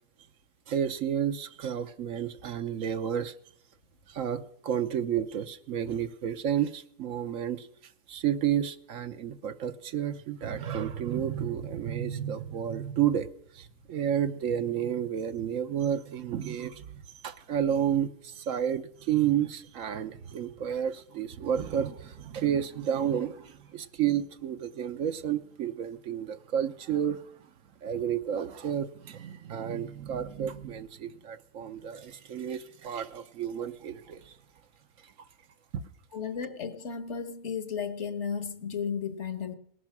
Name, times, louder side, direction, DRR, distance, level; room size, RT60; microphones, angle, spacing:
voice 1, 0.7-3.3 4.1-7.7 8.1-13.3 13.5-27.2 27.8-34.4 35.7-35.8, right 9 dB, 80° right, 1.1 m, -31 dB
voice 2, 36.1-39.5, left 6 dB, 60° left, 1.5 m, -34 dB
19.0 x 11.0 x 6.0 m
omnidirectional pair, 1.4 m